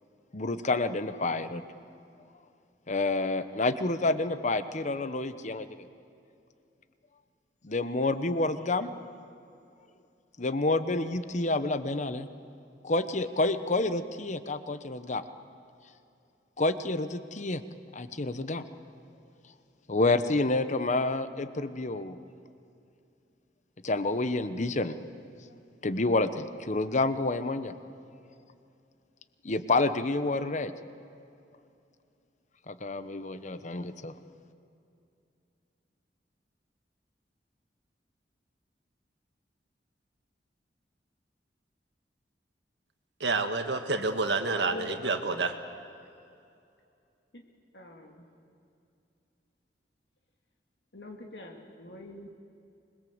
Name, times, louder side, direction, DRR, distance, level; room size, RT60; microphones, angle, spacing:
voice 1, 0.3-1.6 2.9-5.7 7.6-8.9 10.4-12.3 12.8-15.2 16.6-17.6 17.9-18.6 19.9-22.2 23.8-25.0 25.8-27.7 29.4-30.7 31.1-31.2 32.7-34.1, left 2 dB, 45° left, 12 dB, 1.0 m, -28 dB
voice 2, 43.2-45.5, right 3 dB, 80° right, 6 dB, 1.6 m, -28 dB
voice 3, 44.5-45.5 47.3-47.4 47.7-48.3 50.9-52.3, left 1 dB, 70° left, 1 dB, 2.3 m, -44 dB
26.0 x 21.5 x 8.0 m, 2.6 s
head